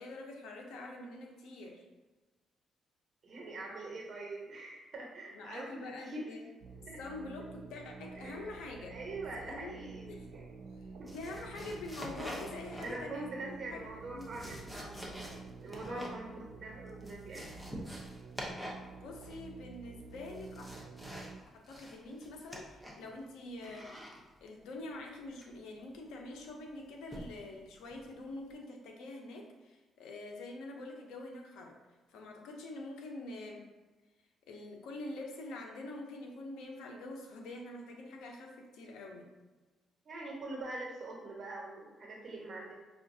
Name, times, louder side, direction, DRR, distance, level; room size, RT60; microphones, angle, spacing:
voice 1, 0.0-1.8 5.3-6.4 7.0-9.0 9.3-9.8 10.1-10.3 10.8-13.9 14.1-14.5 15.9-16.2 18.8-20.7 21.5-23.9 24.4-31.8 32.1-33.6 34.5-39.3, left 2 dB, 90° left, 1 dB, 0.7 m, -45 dB
voice 2, 3.2-6.4 6.9-7.0 8.1-8.5 8.9-10.5 11.0-11.4 12.8-15.0 15.6-17.8 40.0-42.7, right 2 dB, 50° right, -2 dB, 1.1 m, -44 dB
sound 1, 6.6-21.4, right 4 dB, 75° right, 0.4 m, -50 dB
sound 2, 11.1-13.3 14.0-16.2 16.5-16.6 16.9-18.9 19.2-19.6 20.1-21.4 21.6-23.1 23.6-24.2 25.4-25.7 27.1-27.4 27.9-28.2, equal, 5° left, 0.8 m, -46 dB
5.5 x 2.4 x 2.7 m, 1.2 s
cardioid pair, 90°, 0 cm